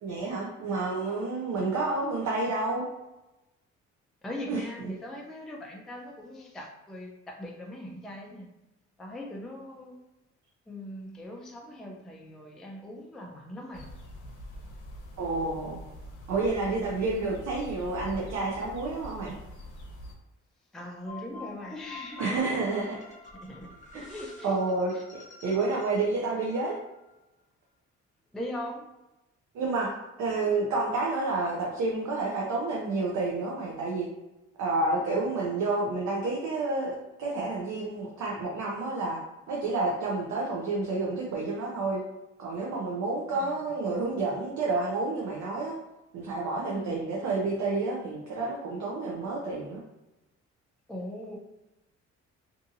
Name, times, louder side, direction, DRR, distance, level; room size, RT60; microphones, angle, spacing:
voice 1, 0.0-2.8 4.5-4.6 15.2-15.8 16.3-19.3 22.2-23.0 23.9-24.0 24.4-26.8 29.5-29.9 30.2-34.1 34.6-39.2 39.5-42.0 42.4-45.8 46.1-49.8, right 3 dB, 65° right, -2 dB, 0.6 m, -29 dB
voice 2, 4.2-8.5 9.0-10.0 10.7-13.9 20.7-22.6 23.4-23.7 23.9-24.6 24.9-25.0 28.3-28.9 43.4-43.7 46.7-47.1 50.9-51.4, left 1 dB, ahead, 1 dB, 0.3 m, -40 dB
sound 1, 13.7-20.1, equal, 80° left, 0.7 m, -44 dB
sound 2, 21.1-27.2, left 4 dB, 25° left, 0.8 m, -48 dB
2.6 x 2.5 x 2.6 m, 0.99 s
cardioid pair, 90°, 30 cm